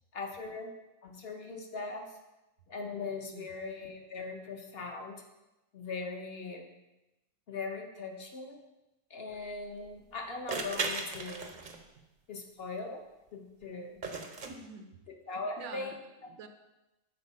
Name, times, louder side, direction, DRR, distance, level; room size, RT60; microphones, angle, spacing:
voice 1, 0.1-0.7 1.0-2.2 2.7-5.2 5.7-6.6 7.5-8.6 9.1-11.5 12.3-13.0 13.3-14.0 15.3-16.0, left 3 dB, 50° left, 3 dB, 1.0 m, -40 dB
sound 1, 9.3-9.4 10.5-12.0 14.0-14.5, right 4 dB, 45° right, 0.7 m, -36 dB
voice 2, 14.4-15.0 15.6-16.0 16.2-16.5, right 5 dB, 80° right, 7 dB, 1.1 m, -47 dB
7.1 x 4.5 x 5.4 m, 1.0 s
omnidirectional pair, 1.5 m